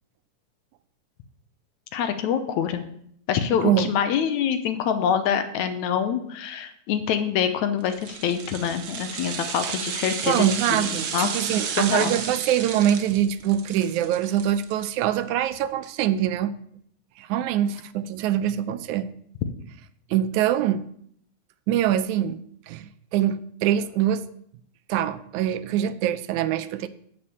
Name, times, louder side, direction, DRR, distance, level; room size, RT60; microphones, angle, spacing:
voice 1, 1.9-2.8 3.3-10.5 10.8-11.3 11.8-12.1, left 8 dB, 75° left, 9 dB, 2.2 m, -25 dB
sound 1, 7.9-15.2 15.5-15.6, right 7 dB, 60° right, 1.6 m, -33 dB
voice 2, 10.3-16.5 17.2-19.1 20.1-20.8 21.7-22.4 22.7-22.9 23.1-24.2 24.9-26.9, right 10 dB, 80° right, 12 dB, 2.0 m, -24 dB
11.0 x 5.2 x 8.5 m, 0.67 s
omnidirectional pair, 3.5 m